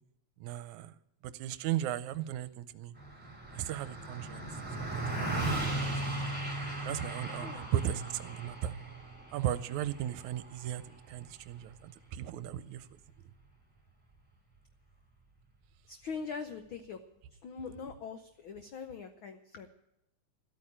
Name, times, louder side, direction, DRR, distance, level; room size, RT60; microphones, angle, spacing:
voice 1, 0.4-0.9 1.4-2.9 3.5-4.5 4.8-5.5 5.8-6.2 6.8-8.8 9.3-12.9, right 11 dB, 80° right, 15 dB, 2.0 m, -36 dB
Car passing by, 3.0-12.6, right 2 dB, 5° right, 2.9 m, -37 dB
voice 2, 7.4-7.7 15.9-17.0 17.3-19.7, left 5 dB, 90° left, 9 dB, 1.1 m, -42 dB
13.5 x 8.7 x 10.0 m, 0.86 s
omnidirectional pair, 3.5 m